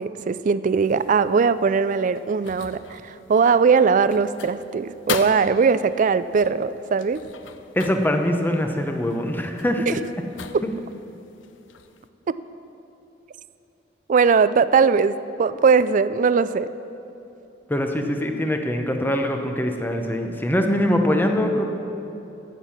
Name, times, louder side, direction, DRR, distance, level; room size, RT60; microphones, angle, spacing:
voice 1, 0.0-7.2 14.1-16.7, right 5 dB, 45° right, 15 dB, 0.3 m, -20 dB
sound 1, 0.8-12.1, left 6 dB, 85° left, 0.6 m, -39 dB
voice 2, 7.8-9.9 17.7-21.6, left 1 dB, 10° left, 4 dB, 0.8 m, -23 dB
15.0 x 7.5 x 6.0 m, 3.0 s
head